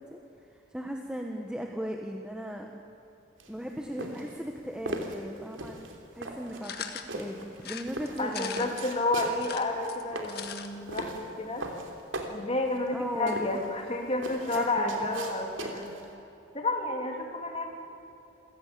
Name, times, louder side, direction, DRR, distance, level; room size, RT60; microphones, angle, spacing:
voice 1, 0.0-2.7 3.5-5.8 6.1-8.8 12.9-13.4 14.5-15.0, equal, 5° right, 2 dB, 1.3 m, -37 dB
sound 1, 3.4-16.1, right 1 dB, 75° right, 3.1 m, -39 dB
sound 2, 6.6-7.1 7.6-8.9 9.3-10.7 11.0-11.1 11.3-11.4, left 8 dB, 50° left, 1.6 m, -39 dB
voice 2, 8.2-11.7 12.3-15.9 16.5-17.7, left 2 dB, 30° left, 2 dB, 3.2 m, -30 dB
27.5 x 17.0 x 8.6 m, 3.0 s
head